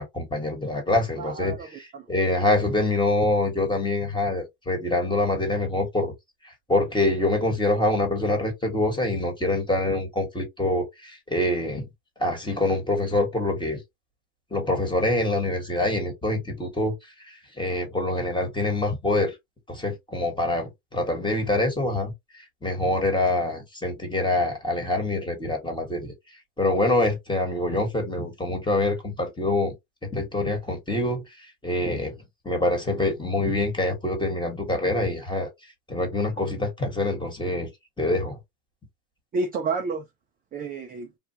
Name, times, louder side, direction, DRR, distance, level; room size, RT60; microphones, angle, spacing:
voice 1, 0.0-1.5 2.1-6.1 6.7-11.9 12.2-13.8 14.5-16.9 17.3-19.3 19.7-22.1 22.6-26.1 26.6-29.7 30.1-31.2 31.6-32.2 32.4-35.5 35.9-37.7 38.0-38.4, left 2 dB, 10° left, 1.3 m, -25 dB
voice 2, 1.1-2.1 39.3-40.0 40.5-41.1, right 4 dB, 20° right, 0.5 m, -30 dB
3.3 x 2.3 x 2.7 m
supercardioid pair, 120°, 47 cm